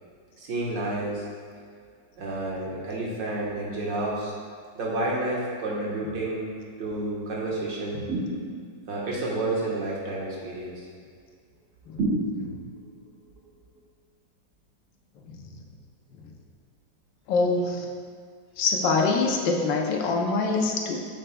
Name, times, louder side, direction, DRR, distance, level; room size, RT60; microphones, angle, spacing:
voice 1, 0.4-1.3 2.2-4.3 4.8-8.0 8.9-10.9, right 2 dB, 75° right, -4 dB, 2.0 m, -30 dB
sound 1, 8.1-8.9 12.0-12.9, right 1 dB, 50° right, 1.1 m, -29 dB
voice 2, 11.9-12.6 15.3-15.5 16.1-16.2 17.3-17.9 18.6-21.0, left 3 dB, 85° left, 2 dB, 1.5 m, -25 dB
7.7 x 7.2 x 2.2 m, 2.1 s
omnidirectional pair, 2.0 m